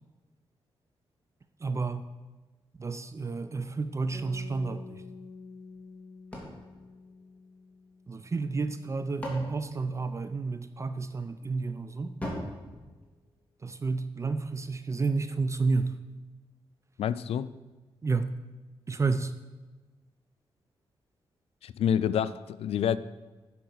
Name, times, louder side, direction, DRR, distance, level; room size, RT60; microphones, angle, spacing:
voice 1, 1.6-2.1 2.8-5.0 8.1-12.1 13.6-16.0 18.0-18.3 18.9-19.3, right 4 dB, 30° right, 10 dB, 0.5 m, -30 dB
sound 1, 4.1-8.4, left 3 dB, 55° right, 2.6 m, -48 dB
sound 2, 6.3-7.9 8.7-10.7 12.2-13.8, equal, 15° left, 3.0 m, -42 dB
voice 2, 17.0-17.5 21.6-23.0, left 9 dB, 85° left, 15 dB, 0.4 m, -28 dB
10.5 x 5.9 x 6.3 m, 1.2 s
cardioid pair, 100°, 10 cm